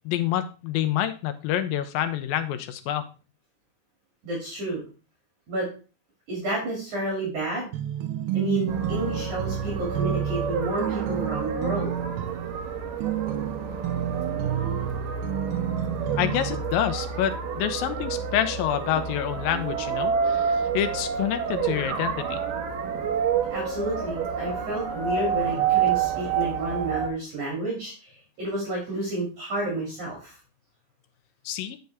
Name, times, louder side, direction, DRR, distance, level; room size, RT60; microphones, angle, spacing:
voice 1, 0.1-3.1 16.2-22.4 31.5-31.8, left 11 dB, 80° left, 9 dB, 2.2 m, -27 dB
voice 2, 4.2-4.8 5.5-5.7 6.3-7.7 8.3-11.9 14.9-15.3 23.5-30.4, right 1 dB, 50° right, -3 dB, 3.7 m, -30 dB
sound 1, 7.7-16.6, right 11 dB, 90° right, 1.9 m, -30 dB
sound 2, 8.7-27.1, right 6 dB, 70° right, 2.4 m, -29 dB
8.2 x 6.5 x 3.4 m, 0.34 s
omnidirectional pair, 4.6 m